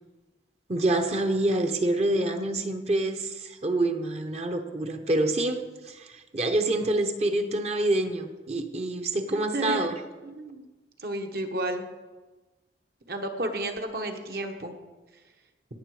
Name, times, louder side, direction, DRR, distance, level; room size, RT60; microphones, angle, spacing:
voice 1, 0.7-9.9, right 2 dB, 35° right, 7 dB, 0.9 m, -27 dB
voice 2, 9.3-9.8 10.2-10.6 11.0-11.9 13.1-14.7, right 1 dB, 60° right, 5 dB, 1.3 m, -32 dB
17.5 x 7.0 x 4.9 m, 1.2 s
head